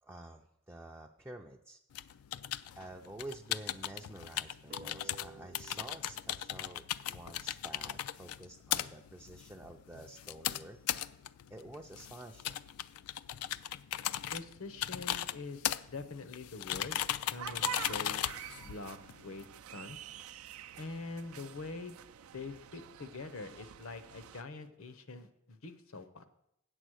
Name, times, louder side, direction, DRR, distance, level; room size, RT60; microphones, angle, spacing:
voice 1, 0.0-1.8 2.7-10.8 11.5-12.6, right 1 dB, 10° right, 1 dB, 0.4 m, -49 dB
sound 1, 1.9-19.5, left 12 dB, 90° left, 0.4 m, -38 dB
sound 2, 4.7-7.9, right 4 dB, 45° right, 0.7 m, -56 dB
voice 2, 14.3-17.0 17.3-18.2 18.6-19.0 19.2-19.4 19.7-20.0 20.8-22.0 22.3-26.2, left 3 dB, 70° left, 10 dB, 0.8 m, -44 dB
sound 3, 17.4-24.4, right 10 dB, 80° right, 0.4 m, -47 dB
8.2 x 8.0 x 6.3 m, 0.81 s
head